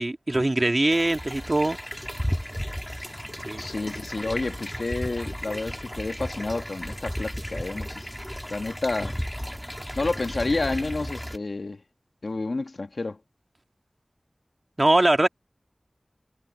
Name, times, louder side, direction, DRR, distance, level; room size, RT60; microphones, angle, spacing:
voice 1, 0.0-1.8 3.4-3.7 14.8-15.3, right 2 dB, 40° right, 2.0 m, -22 dB
sound 1, 0.9-11.4, equal, 5° left, 3.2 m, -34 dB
voice 2, 3.6-8.1 8.5-9.1 10.0-11.8 12.2-13.2, left 3 dB, 80° left, 1.8 m, -30 dB
wide cardioid pair, 60°, 0 cm